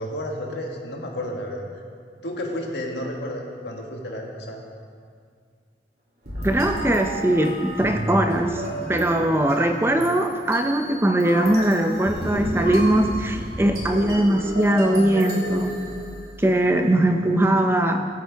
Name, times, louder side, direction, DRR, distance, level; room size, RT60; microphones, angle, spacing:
voice 1, 0.0-1.6 2.2-4.6, left 1 dB, 80° left, 0 dB, 1.6 m, -31 dB
Creepy Marimba, 6.2-16.6, equal, 65° right, 2.8 m, -31 dB
voice 2, 6.4-8.6 8.9-15.8 16.4-18.1, right 1 dB, 15° right, 5 dB, 0.5 m, -21 dB
15.0 x 8.4 x 3.5 m, 2.1 s
head